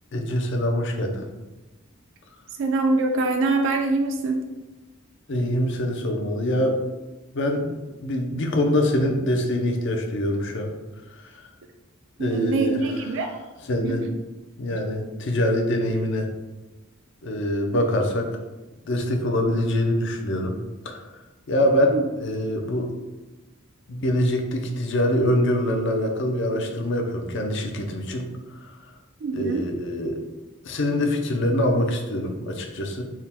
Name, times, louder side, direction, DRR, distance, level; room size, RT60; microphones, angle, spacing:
voice 1, 0.1-1.3 5.3-6.8 7.3-7.6 8.0-10.7 11.1-11.4 12.2-12.8 13.7-14.0 14.6-16.3 17.2-18.3 18.9-20.5 20.8-21.0 21.5-22.9 23.9-28.6 29.3-30.2 30.6-33.0, left 1 dB, 65° left, 3 dB, 0.6 m, -24 dB
voice 2, 2.6-4.4 12.2-13.3 13.8-13.9 21.9-22.0 29.2-29.7, right 3 dB, 65° right, 4 dB, 0.4 m, -24 dB
3.6 x 2.2 x 4.2 m, 1.1 s
head